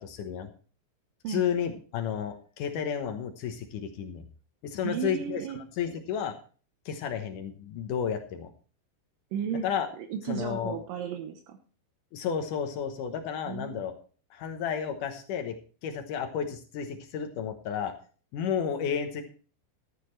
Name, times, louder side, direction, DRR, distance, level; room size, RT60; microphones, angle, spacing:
voice 1, 0.0-0.5 1.3-4.2 4.6-5.4 5.8-6.4 6.9-8.5 9.6-9.9 10.3-10.8 12.1-14.0 14.3-15.6 15.8-17.9 18.3-19.2, left 8 dB, 80° left, 6 dB, 1.8 m, -32 dB
voice 2, 4.8-5.6 9.3-9.6 10.0-11.6 13.5-13.8, right 8 dB, 75° right, 4 dB, 2.1 m, -34 dB
14.0 x 11.5 x 3.2 m, 0.39 s
omnidirectional pair, 5.3 m